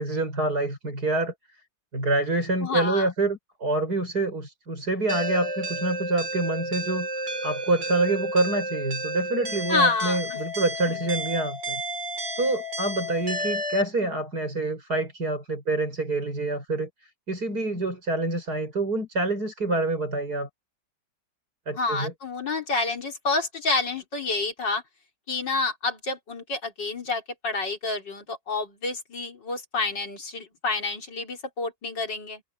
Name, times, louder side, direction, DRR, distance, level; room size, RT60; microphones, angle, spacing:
voice 1, 0.0-1.3 1.9-11.8 12.4-20.5 21.7-22.1, right 2 dB, 55° right, 7.3 m, -27 dB
voice 2, 2.6-3.1 9.7-10.4 10.9-11.1 21.8-24.8 25.3-32.4, left 3 dB, 70° left, 4.2 m, -28 dB
sound 1, 5.1-13.8, right 1 dB, 75° right, 5.5 m, -31 dB
omnidirectional pair, 2.0 m